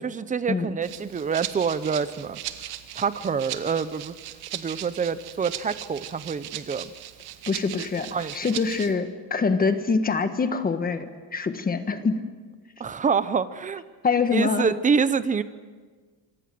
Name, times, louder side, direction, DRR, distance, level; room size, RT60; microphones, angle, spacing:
voice 1, 0.0-2.4 3.0-4.2 4.5-6.9 7.8-7.9 8.1-8.3 12.8-13.8 14.3-15.4, right 6 dB, 15° right, 14 dB, 0.7 m, -26 dB
Rattle (instrument), 0.8-8.9, right 12 dB, 55° right, 1.9 m, -38 dB
voice 2, 7.5-12.2 14.0-14.7, left 4 dB, 20° left, 9 dB, 1.5 m, -25 dB
27.5 x 25.0 x 7.8 m, 1.5 s
cardioid pair, 170°, 47 cm